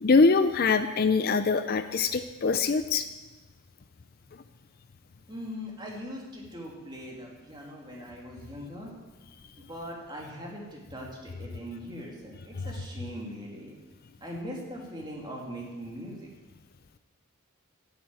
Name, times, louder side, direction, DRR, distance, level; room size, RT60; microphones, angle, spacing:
voice 1, 0.0-3.0, left 4 dB, 45° left, 10 dB, 0.5 m, -23 dB
voice 2, 5.3-8.9 9.6-13.7 14.2-16.3, equal, 20° right, -2 dB, 2.7 m, -40 dB
10.5 x 8.0 x 9.0 m, 1.2 s
head